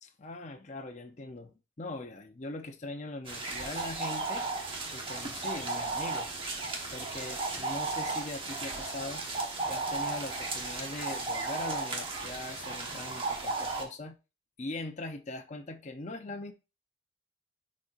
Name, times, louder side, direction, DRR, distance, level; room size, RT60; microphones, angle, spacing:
voice 1, 0.0-4.5 4.9-6.3 6.9-9.3 9.6-14.2 14.6-16.5, left 2 dB, 35° left, 0.6 m, -41 dB
sound 1, 3.3-13.8, right 3 dB, 30° right, 1.2 m, -35 dB
10.0 x 4.2 x 2.5 m
head